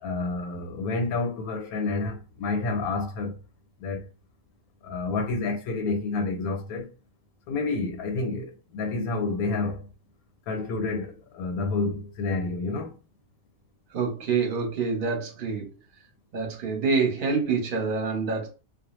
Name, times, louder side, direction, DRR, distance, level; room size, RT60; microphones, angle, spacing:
voice 1, 0.0-3.3 3.8-4.0 4.8-6.9 7.5-9.9 10.5-12.9, left 3 dB, 85° left, 1.1 m, -29 dB
voice 2, 13.9-15.7 16.3-18.5, right 4 dB, 45° right, 0.8 m, -26 dB
2.4 x 2.1 x 3.0 m
omnidirectional pair, 1.5 m